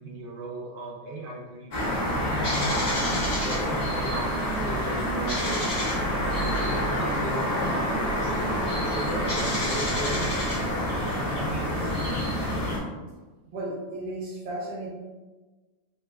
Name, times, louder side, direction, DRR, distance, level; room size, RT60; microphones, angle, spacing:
voice 1, 0.0-2.0 2.3-5.9 6.6-11.9, right 2 dB, 80° right, -1 dB, 1.1 m, -38 dB
sound 1, 1.7-12.8, equal, 40° left, 0.7 m, -27 dB
voice 2, 13.5-14.9, right 1 dB, 40° right, -5 dB, 0.9 m, -34 dB
3.4 x 2.2 x 3.0 m, 1.2 s
omnidirectional pair, 1.6 m